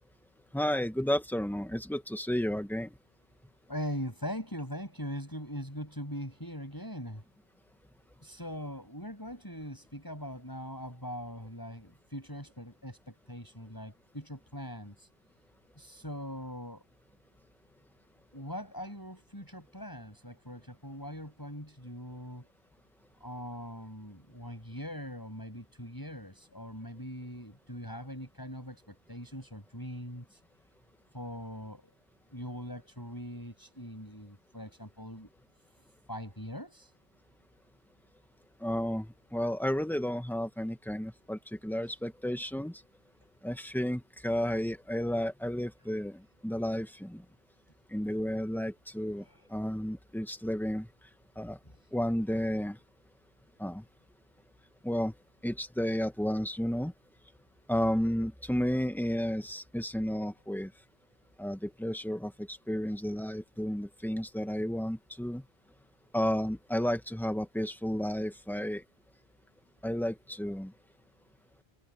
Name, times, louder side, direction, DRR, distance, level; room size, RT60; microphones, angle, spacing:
voice 1, 0.5-2.9 38.6-42.8 43.4-47.2 47.9-49.2 49.5-50.9 51.4-51.6 51.9-52.8 53.6-53.8 54.8-55.1 55.4-56.9 57.7-60.7 61.4-65.4 66.1-68.8 69.8-70.7, equal, ahead, 1.4 m, -32 dB
voice 2, 3.7-7.2 8.2-15.1 15.8-16.8 18.3-22.5 23.2-30.4 31.1-31.9 32.3-35.3 36.1-36.9 49.2-49.4, equal, 20° left, 7.1 m, -41 dB
omnidirectional pair, 1.1 m